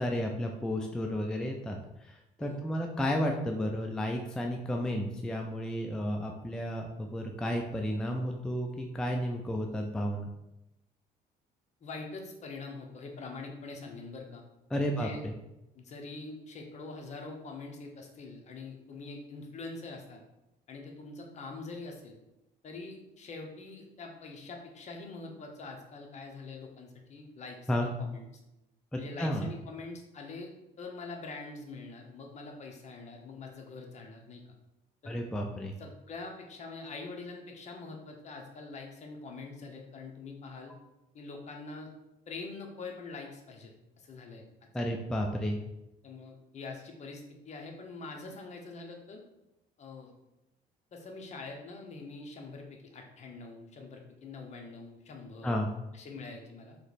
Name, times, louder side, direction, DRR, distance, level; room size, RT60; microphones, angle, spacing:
voice 1, 0.0-10.3 14.7-15.3 27.7-27.9 28.9-29.5 35.1-35.7 44.7-45.6 55.4-55.7, equal, 5° left, 2 dB, 0.3 m, -32 dB
voice 2, 11.8-14.4 14.8-15.2 15.7-20.2 20.7-22.2 22.6-28.3 29.0-30.5 30.8-34.4 35.0-35.2 35.8-40.7 41.1-41.9 42.3-44.4 46.0-49.2 49.8-50.1 50.9-55.5 55.9-56.8, left 3 dB, 45° left, 2 dB, 0.8 m, -44 dB
3.1 x 3.0 x 4.1 m, 0.91 s
cardioid pair, 110°, 17 cm